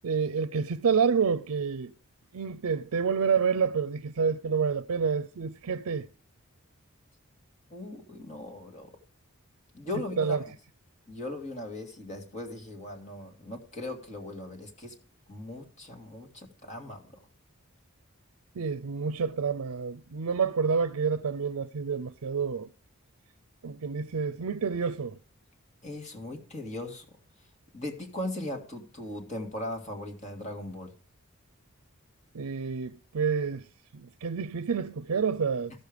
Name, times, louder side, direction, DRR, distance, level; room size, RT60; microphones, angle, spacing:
voice 1, 0.0-1.9 2.3-6.1 10.2-10.4 18.6-22.7 23.6-25.2 32.3-33.7 33.9-35.7, right 6 dB, 85° right, 0.5 m, -28 dB
voice 2, 7.7-8.9 9.7-10.4 11.1-14.9 15.3-17.2 25.8-27.1 27.7-30.9, left 1 dB, 30° left, 2.0 m, -38 dB
14.0 x 6.7 x 5.0 m
head